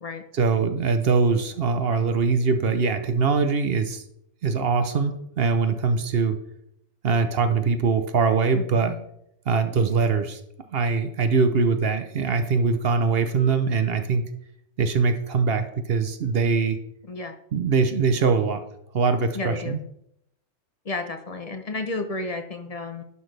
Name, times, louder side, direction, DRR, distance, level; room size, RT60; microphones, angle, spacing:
voice 1, 0.3-4.0 4.4-6.4 7.0-8.9 9.5-10.4 10.7-14.3 14.8-16.8 17.5-18.6 18.9-19.8, right 5 dB, 55° right, 9 dB, 0.8 m, -22 dB
voice 2, 8.5-9.0 17.1-17.4 19.3-19.8 20.8-23.0, left 3 dB, 40° left, 7 dB, 0.6 m, -32 dB
11.0 x 6.1 x 3.3 m, 0.75 s
omnidirectional pair, 1.3 m